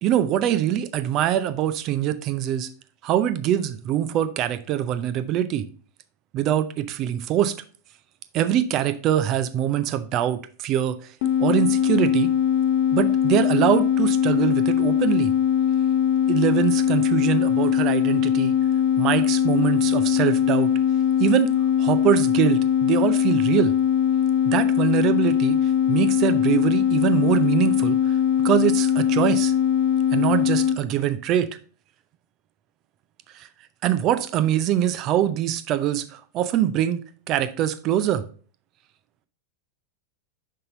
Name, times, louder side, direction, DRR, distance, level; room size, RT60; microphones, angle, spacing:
voice 1, 0.0-2.7 3.0-5.7 6.3-7.5 8.3-11.0 11.4-12.3 12.9-15.3 16.3-18.5 19.0-20.7 21.2-21.5 21.8-23.7 24.4-25.6 25.9-28.2 28.4-29.5 30.1-31.5 33.3-33.5 33.8-37.0 37.3-38.2, right 11 dB, 35° right, 0.5 m, -23 dB
sound 1, 11.2-30.8, left 9 dB, 50° left, 0.6 m, -21 dB
5.6 x 5.4 x 3.8 m
figure-of-eight pair, 90°, 0 cm